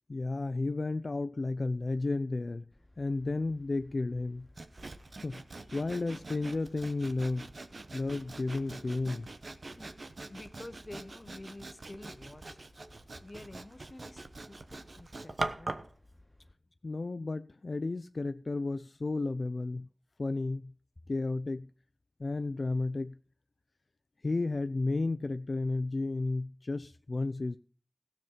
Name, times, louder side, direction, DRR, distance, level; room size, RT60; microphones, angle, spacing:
voice 1, 0.1-2.6 3.0-4.5 5.2-5.4 5.7-7.5 7.9-9.3 16.8-19.9 20.2-20.7 21.1-21.7 22.2-23.2 24.2-27.6, left 3 dB, 75° left, 0.5 m, -32 dB
sound 1, 2.7-16.5, left 1 dB, 20° left, 2.4 m, -61 dB
Sawing, 4.6-15.9, right 2 dB, 75° right, 1.0 m, -43 dB
voice 2, 9.6-12.6 13.2-15.8, left 2 dB, 40° left, 1.1 m, -49 dB
16.5 x 7.4 x 5.6 m
wide cardioid pair, 55°, 0 cm